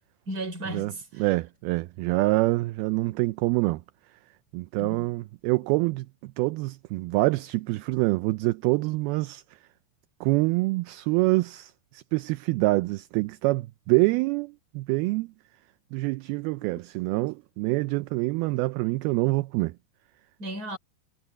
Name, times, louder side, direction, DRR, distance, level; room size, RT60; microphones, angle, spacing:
voice 1, 0.3-1.3 4.8-5.1 20.4-20.8, right 1 dB, 20° right, 4.3 m, -35 dB
voice 2, 1.2-3.8 4.5-9.4 10.2-15.3 15.9-19.7, right 22 dB, 80° right, 2.3 m, -26 dB
omnidirectional pair, 4.7 m